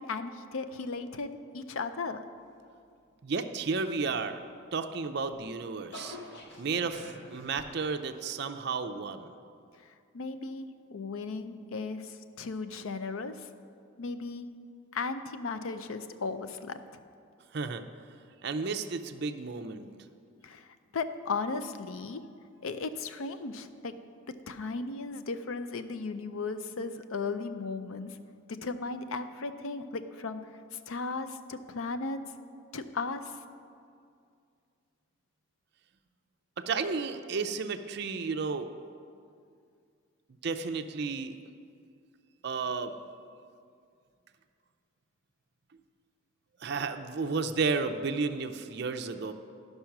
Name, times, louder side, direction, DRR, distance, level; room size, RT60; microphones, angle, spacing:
voice 1, 0.0-2.2 9.8-13.5 14.0-14.5 14.9-17.0 20.4-22.2 22.6-23.9 24.5-28.2 28.5-30.4 30.7-32.2 32.7-33.4, left 4 dB, 80° left, 11 dB, 0.5 m, -36 dB
voice 2, 3.2-4.4 4.7-6.2 6.6-9.3 17.5-17.8 18.4-19.9 36.6-38.7 40.4-41.3 42.4-43.0 46.6-49.3, right 4 dB, 50° right, 8 dB, 0.5 m, -32 dB
sound 1, 4.9-8.3, left 2 dB, 55° left, 1.0 m, -48 dB
11.5 x 5.5 x 5.9 m, 2.3 s
head